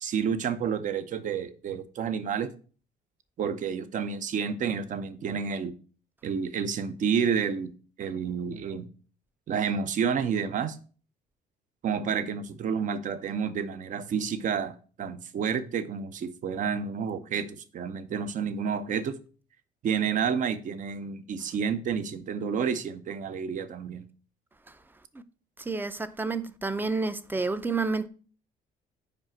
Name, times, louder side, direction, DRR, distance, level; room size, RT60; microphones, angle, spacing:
voice 1, 0.0-2.5 3.4-5.7 6.2-7.7 8.0-8.9 9.5-10.8 11.8-19.2 19.8-24.1, right 7 dB, 50° right, 0.8 m, -30 dB
voice 2, 25.7-28.1, right 3 dB, 10° right, 0.5 m, -29 dB
5.3 x 5.0 x 5.9 m
cardioid pair, 110°, 17 cm